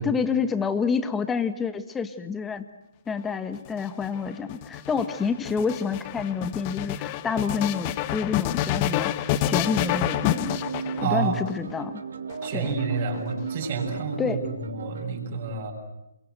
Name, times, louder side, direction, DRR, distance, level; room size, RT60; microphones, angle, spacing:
voice 1, 0.0-2.6 3.1-10.6 11.0-12.0 12.5-12.7 14.2-14.4, left 5 dB, 10° left, 10 dB, 1.5 m, -28 dB
sound 1, 3.6-11.5 12.3-13.2, left 12 dB, 30° left, 0.9 m, -28 dB
sound 2, 9.6-15.1, right 5 dB, 65° right, 1.9 m, -36 dB
voice 2, 11.0-11.4 12.4-15.7, right 5 dB, 45° right, 1 dB, 6.9 m, -29 dB
28.5 x 23.0 x 8.0 m, 0.92 s
hypercardioid pair, 145°, 0 cm